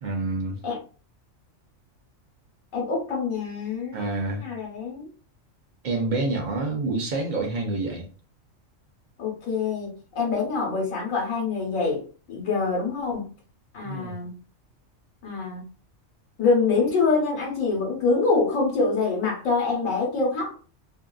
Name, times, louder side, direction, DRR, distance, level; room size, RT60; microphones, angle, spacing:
voice 1, 0.0-0.6 3.9-4.5 5.8-8.1 13.8-14.1, right 2 dB, 50° right, 0.6 m, -27 dB
voice 2, 2.7-4.0 4.4-5.0 9.2-13.3 13.7-14.3 15.2-15.6 16.4-20.5, left 4 dB, 80° left, 1.2 m, -25 dB
2.7 x 2.4 x 2.2 m
omnidirectional pair, 1.4 m